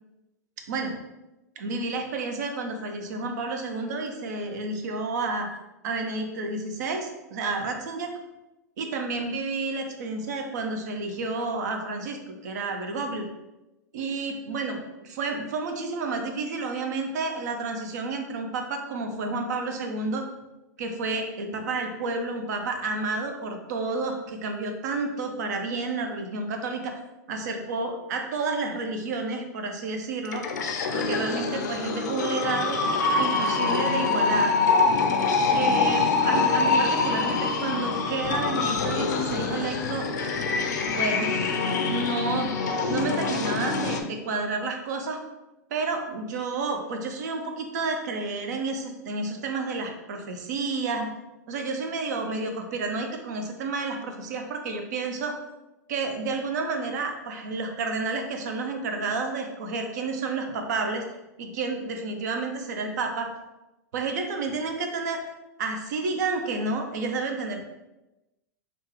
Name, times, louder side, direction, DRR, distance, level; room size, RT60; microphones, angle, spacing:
voice 1, 1.6-5.5 5.8-8.1 8.8-13.3 13.9-20.2 20.8-27.0 27.3-30.4 30.9-32.8 33.2-34.5 35.5-40.1 40.9-41.3 41.9-42.5 42.9-45.2 45.7-51.1 51.5-55.4 55.9-61.1 61.4-63.3 63.9-65.2 65.6-67.6, right 3 dB, 70° right, 4 dB, 0.6 m, -30 dB
sound 1, 30.2-44.0, left 4 dB, 80° left, 0.5 m, -25 dB
3.5 x 2.4 x 3.1 m, 1.0 s
hypercardioid pair, 105°, 10 cm